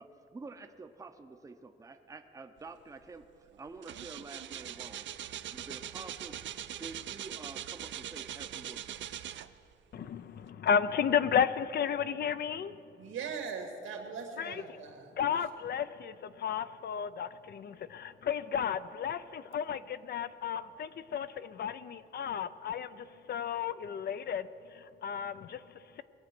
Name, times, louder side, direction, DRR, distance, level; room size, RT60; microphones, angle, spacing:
voice 1, 0.0-3.3 3.6-5.1 5.5-6.4 6.8-8.9, right 3 dB, 15° right, 6 dB, 0.6 m, -48 dB
sound 1, 3.0-3.2 3.5-9.8 10.4-10.5, right 11 dB, 65° right, 0.5 m, -42 dB
voice 2, 9.9-12.7 14.4-14.6 15.2-26.0, left 8 dB, 55° left, 14 dB, 0.5 m, -33 dB
voice 3, 13.0-15.1, right 5 dB, 90° right, 4 dB, 2.0 m, -40 dB
20.5 x 7.9 x 6.0 m, 2.5 s
wide cardioid pair, 150°, 21 cm